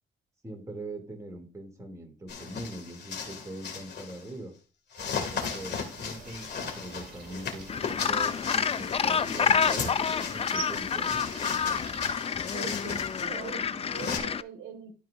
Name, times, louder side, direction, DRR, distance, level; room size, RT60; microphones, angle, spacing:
voice 1, 0.4-4.5 5.1-11.2, right 1 dB, 15° right, 1 dB, 2.9 m, -42 dB
sound 1, 2.3-4.3 4.9-14.2, left 6 dB, 55° left, 2.3 m, -37 dB
sound 2, 5.0-12.1, right 5 dB, 50° right, 2.9 m, -46 dB
Gull seagull, 7.7-14.4, left 6 dB, 30° left, 0.4 m, -28 dB
voice 2, 12.5-15.0, right 5 dB, 65° right, 3 dB, 1.8 m, -42 dB
13.0 x 4.7 x 2.6 m, 0.37 s
cardioid pair, 90°, 20 cm